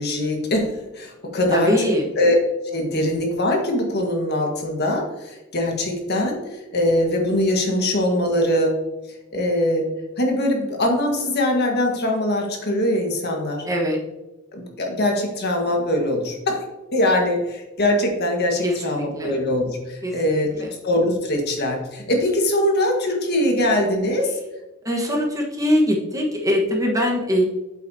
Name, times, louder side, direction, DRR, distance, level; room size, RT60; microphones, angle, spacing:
voice 1, 0.0-2.3 2.6-8.7 9.3-9.9 10.2-13.6 14.5-16.6 16.9-24.3, left 1 dB, 50° left, 1 dB, 1.6 m, -22 dB
voice 2, 1.5-2.0 13.6-14.0 18.6-19.4 20.0-20.7 24.8-27.4, equal, 15° right, -1 dB, 1.3 m, -22 dB
8.2 x 8.0 x 2.8 m, 1.1 s
head